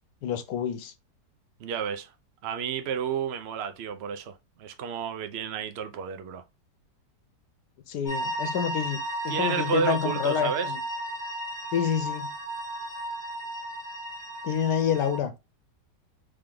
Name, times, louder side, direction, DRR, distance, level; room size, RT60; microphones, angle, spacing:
voice 1, 0.2-0.9 7.9-9.0 9.2-10.8 11.7-12.3 14.4-15.3, left 8 dB, 70° left, 1.3 m, -28 dB
voice 2, 1.6-2.1 2.4-6.4 9.3-10.7, right 7 dB, 60° right, 0.6 m, -31 dB
sound 1, 8.0-15.2, right 1 dB, 15° left, 1.2 m, -34 dB
3.5 x 3.4 x 3.6 m
omnidirectional pair, 1.8 m